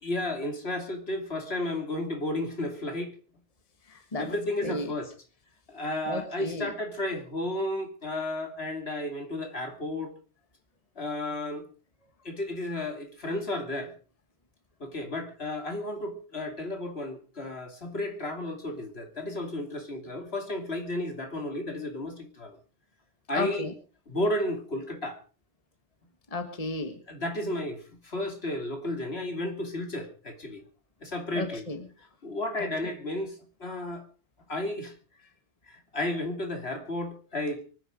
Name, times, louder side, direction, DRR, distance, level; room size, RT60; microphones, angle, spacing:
voice 1, 0.0-3.1 4.2-5.1 5.7-10.1 11.0-11.6 12.2-13.9 14.8-22.6 23.3-23.7 24.1-25.1 27.1-30.6 31.0-31.6 32.2-34.1 34.5-34.9 35.7-37.6, left 1 dB, 65° left, 3.1 m, -33 dB
voice 2, 3.9-4.3 4.6-4.9 6.1-6.7 23.3-23.7 26.3-27.0 31.3-31.8 32.6-32.7, left 2 dB, 30° left, 1.6 m, -33 dB
24.5 x 10.0 x 5.0 m
omnidirectional pair, 1.2 m